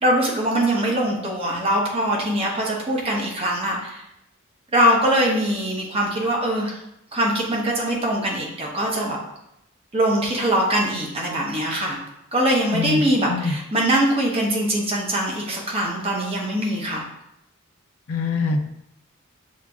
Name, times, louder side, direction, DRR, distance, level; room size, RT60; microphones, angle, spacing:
voice 1, 0.0-4.0 4.7-6.8 7.1-9.2 9.9-12.0 12.3-17.0, right 1 dB, 30° right, -2 dB, 0.9 m, -22 dB
voice 2, 18.1-18.7, left 3 dB, 80° left, 4 dB, 0.5 m, -24 dB
7.1 x 2.5 x 2.3 m, 0.80 s
head